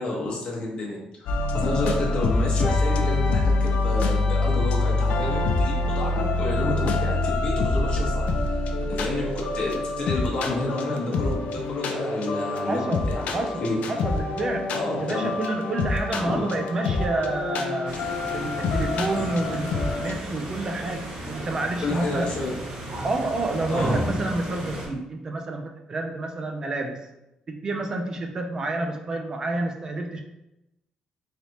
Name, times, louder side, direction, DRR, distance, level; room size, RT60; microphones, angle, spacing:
voice 1, 0.0-8.2 8.5-8.6 8.9-13.7 14.7-15.3 16.2-16.5 21.8-22.5 23.7-24.0, left 2 dB, 45° left, -1 dB, 0.9 m, -30 dB
sound 1, 1.3-20.2, left 2 dB, 75° left, 0.4 m, -26 dB
voice 2, 12.7-14.7 15.0-18.0 18.3-22.3 23.0-27.0 27.5-30.2, right 2 dB, 30° right, 4 dB, 0.3 m, -29 dB
sound 2, 17.9-24.9, right 1 dB, 50° right, 1.1 m, -33 dB
4.0 x 3.3 x 2.8 m, 0.91 s
cardioid pair, 165°, 2 cm